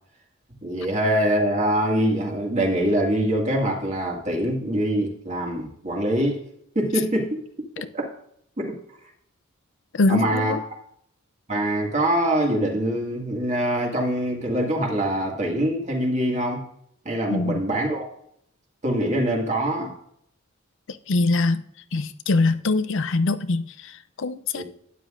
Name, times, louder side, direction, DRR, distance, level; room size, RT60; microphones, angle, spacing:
voice 1, 0.6-6.4 6.8-7.4 7.9-8.1 8.6-8.7 10.1-10.6 11.5-16.6 17.1-18.1 18.8-19.9 24.5-24.6, right 1 dB, 35° right, 0 dB, 2.1 m, -24 dB
voice 2, 9.9-10.6 17.3-17.6 20.9-21.6 21.9-24.6, left 3 dB, 65° left, 11 dB, 0.6 m, -23 dB
12.5 x 9.5 x 2.6 m, 0.69 s
head